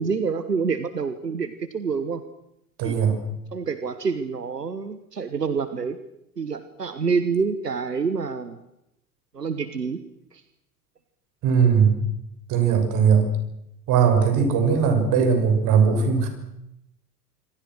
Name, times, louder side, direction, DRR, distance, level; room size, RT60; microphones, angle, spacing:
voice 1, 0.0-2.2 2.8-3.0 3.5-6.0 6.4-8.6 9.3-10.0 10.3-10.4, right 5 dB, 85° right, 12 dB, 1.4 m, -27 dB
voice 2, 2.8-3.2 11.4-12.0 12.5-13.3 13.9-16.3, right 6 dB, 40° right, 6 dB, 7.1 m, -19 dB
26.0 x 25.0 x 6.5 m, 0.83 s
figure-of-eight pair, 85°, 47 cm